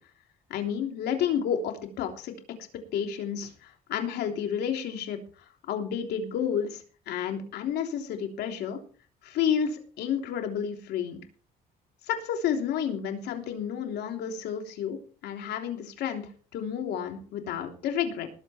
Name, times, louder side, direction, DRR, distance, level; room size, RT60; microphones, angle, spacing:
voice 1, 0.5-2.3 2.9-8.8 9.2-11.2 12.0-15.0 15.2-18.3, left 8 dB, 75° left, 4 dB, 3.3 m, -31 dB
19.5 x 8.0 x 4.4 m, 0.39 s
cardioid pair, 110°, 17 cm